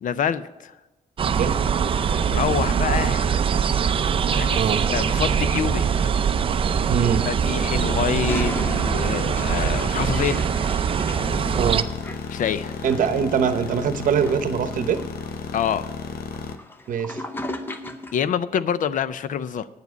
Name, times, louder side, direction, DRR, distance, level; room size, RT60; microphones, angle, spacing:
voice 1, 0.0-0.8 2.1-3.4 4.3-6.1 7.3-10.4 12.3-12.8 15.5-15.9 18.1-19.7, left 8 dB, 60° left, 0.5 m, -26 dB
sound 1, 1.2-11.8, right 7 dB, 35° right, 0.4 m, -22 dB
voice 2, 4.5-4.9 6.9-7.3 11.6-11.8 12.8-15.0 16.9-17.2, right 7 dB, 60° right, 0.9 m, -23 dB
Toilet flush, 7.6-18.3, left 1 dB, 15° left, 0.6 m, -38 dB
sound 2, 11.1-16.6, left 6 dB, 80° left, 0.9 m, -34 dB
9.4 x 7.3 x 8.0 m
wide cardioid pair, 170°, 15 cm